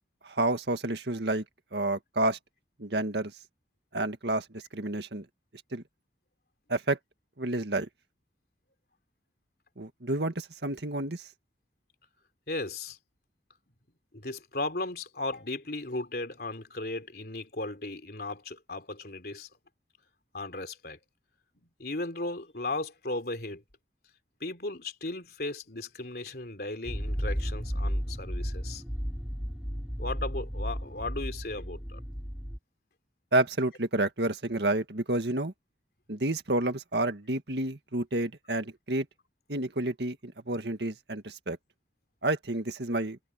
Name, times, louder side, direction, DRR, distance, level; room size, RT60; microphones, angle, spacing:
voice 1, 0.2-1.4 1.7-2.4 2.8-3.3 3.9-4.4 4.7-5.3 5.7-5.8 6.7-7.0 7.4-7.9 9.8-11.2 33.3-35.5 36.1-39.1 39.5-41.6 42.2-43.2, right 2 dB, 75° right, 1.9 m, -29 dB
voice 2, 12.5-13.0 14.1-19.5 20.3-21.0 21.8-23.6 24.4-28.8 30.0-32.0, left 2 dB, 60° left, 3.6 m, -36 dB
sound 1, 26.9-32.6, equal, ahead, 3.0 m, -33 dB
head